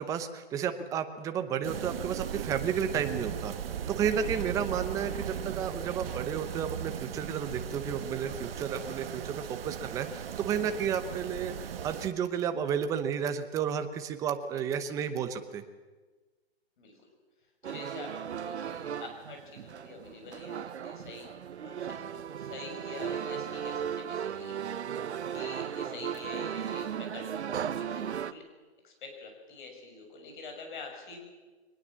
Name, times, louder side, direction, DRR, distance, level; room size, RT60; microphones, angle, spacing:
voice 1, 0.0-3.5 3.9-15.6, right 8 dB, 10° right, 9 dB, 0.8 m, -32 dB
sound 1, 1.6-12.1, right 9 dB, 60° right, 1.4 m, -37 dB
voice 2, 16.8-17.1 17.6-21.3 21.6-24.6 25.3-28.5 28.8-31.2, left 3 dB, 45° left, 3 dB, 6.8 m, -46 dB
sound 2, 17.6-28.3, right 8 dB, 80° right, 1.0 m, -36 dB
23.0 x 20.0 x 7.4 m, 1.3 s
hypercardioid pair, 160°, 33 cm